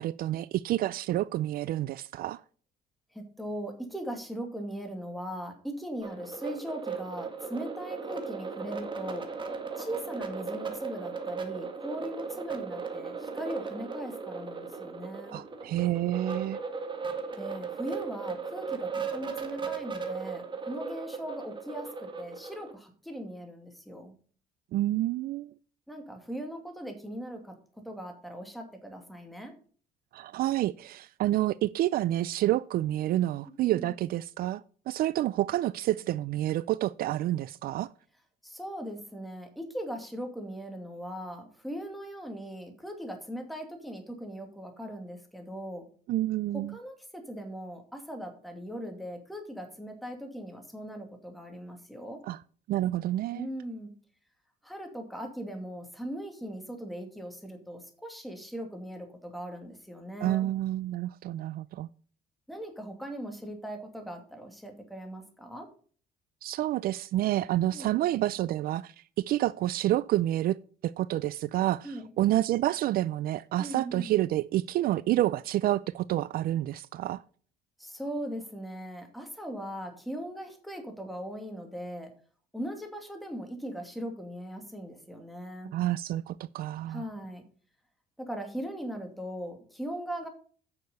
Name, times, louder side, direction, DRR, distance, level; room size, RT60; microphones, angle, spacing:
voice 1, 0.0-2.4 15.3-16.6 24.7-25.5 30.1-37.9 46.1-46.8 52.3-52.4 52.7-53.5 60.2-61.9 66.4-70.6 70.8-77.2 85.7-87.1, right 14 dB, 60° right, 0.4 m, -29 dB
voice 2, 3.1-9.3 9.8-15.4 17.4-24.1 25.9-27.6 27.8-29.5 33.6-33.9 38.4-45.9 46.5-52.2 53.3-53.9 54.6-60.5 62.5-65.7 67.7-68.0 71.8-72.1 73.6-74.1 77.8-82.1 82.5-85.7 86.9-87.4 88.2-90.3, equal, ahead, 2.4 m, -39 dB
sound 1, 6.0-22.7, right 5 dB, 30° right, 2.0 m, -37 dB
9.5 x 6.6 x 5.4 m
cardioid pair, 110°, 17 cm